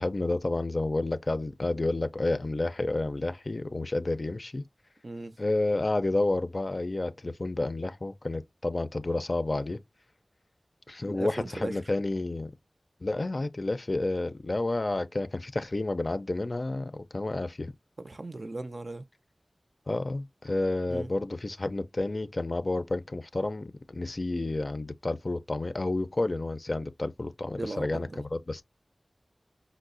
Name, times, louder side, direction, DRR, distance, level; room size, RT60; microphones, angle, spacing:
voice 1, 0.0-4.6 5.4-9.8 10.9-12.5 13.0-17.7 19.9-28.6, left 2 dB, 50° left, 0.4 m, -30 dB
voice 2, 5.0-5.4 11.0-11.8 18.0-19.0 20.9-21.1 27.5-28.2, right 2 dB, 55° right, 0.4 m, -37 dB
4.7 x 2.0 x 2.5 m
wide cardioid pair, 45°, 0 cm